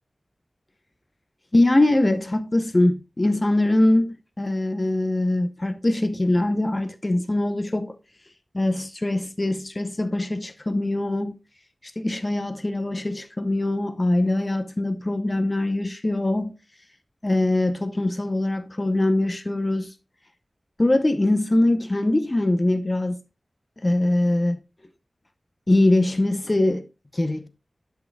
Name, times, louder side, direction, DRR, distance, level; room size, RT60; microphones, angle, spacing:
voice 1, 1.5-7.9 8.5-11.4 11.8-16.5 17.2-19.9 20.8-23.2 23.8-24.6 25.7-26.8 27.1-27.5, left 1 dB, 30° left, 0.7 m, -22 dB
11.5 x 6.3 x 2.2 m
wide cardioid pair, 65°, 0 cm